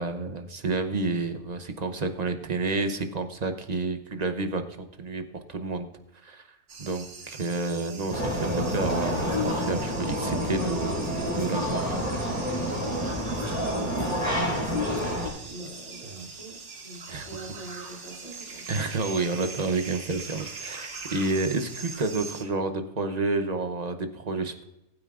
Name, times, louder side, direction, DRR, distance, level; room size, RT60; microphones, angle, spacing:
voice 1, 0.0-5.9 6.2-12.0 15.0-15.3 16.1-16.3 17.1-17.3 18.7-24.6, right 3 dB, 35° right, 7 dB, 0.7 m, -30 dB
sound 1, 6.7-22.4, right 4 dB, 55° right, 1.4 m, -42 dB
sound 2, 8.1-15.3, equal, 5° right, 4.6 m, -28 dB
voice 2, 13.7-14.3 15.4-18.7, right 2 dB, 70° left, -3 dB, 4.1 m, -44 dB
19.5 x 9.2 x 2.5 m, 0.91 s
omnidirectional pair, 1.5 m